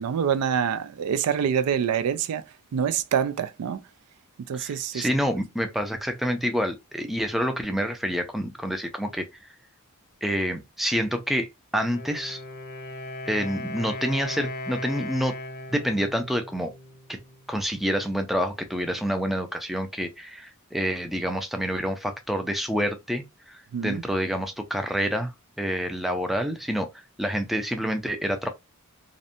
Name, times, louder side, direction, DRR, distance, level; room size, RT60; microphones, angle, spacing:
voice 1, 0.0-2.4 2.7-3.8 4.5-5.1 23.7-24.0, right 8 dB, 80° right, 0.3 m, -26 dB
voice 2, 4.5-9.3 10.2-12.4 13.3-15.4 15.7-16.7 17.1-17.2 17.5-28.5, equal, ahead, 0.3 m, -28 dB
Wind instrument woodwind instrument, 11.8-17.6, left 2 dB, 50° left, 0.6 m, -38 dB
2.6 x 2.1 x 2.6 m
head